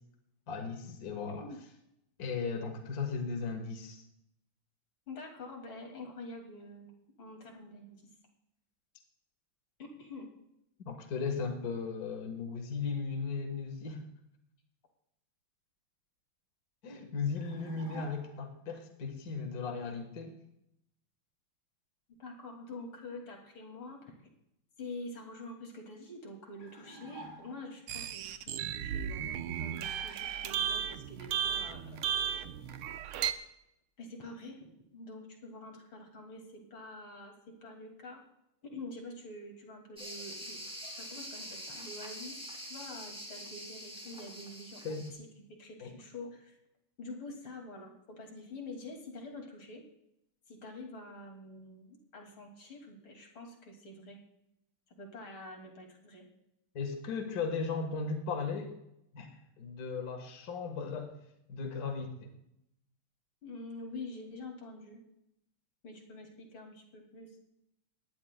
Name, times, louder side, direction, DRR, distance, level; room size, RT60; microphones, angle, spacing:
voice 1, 0.5-1.5 2.2-4.0 10.9-14.0 16.8-20.3 44.8-45.1 45.8-45.9 56.7-58.7 59.1-59.3 59.6-61.1 61.5-62.3, left 5 dB, 50° left, 3 dB, 1.8 m, -36 dB
voice 2, 5.1-8.0 9.8-10.3 22.2-24.1 24.8-32.9 34.0-34.7 34.9-38.2 38.6-40.6 41.0-42.3 42.6-45.0 45.6-46.5 47.0-49.8 50.5-54.2 55.0-56.2 63.4-65.0 65.8-67.4, left 2 dB, 75° left, 1 dB, 3.2 m, -46 dB
sound 1, 17.4-18.5 26.6-27.9, right 1 dB, 50° right, 4.1 m, -50 dB
sound 2, 27.9-33.3, right 9 dB, 85° right, 1.6 m, -35 dB
sound 3, 40.0-45.1, equal, 5° right, 2.5 m, -45 dB
20.5 x 17.5 x 2.2 m, 0.82 s
omnidirectional pair, 2.3 m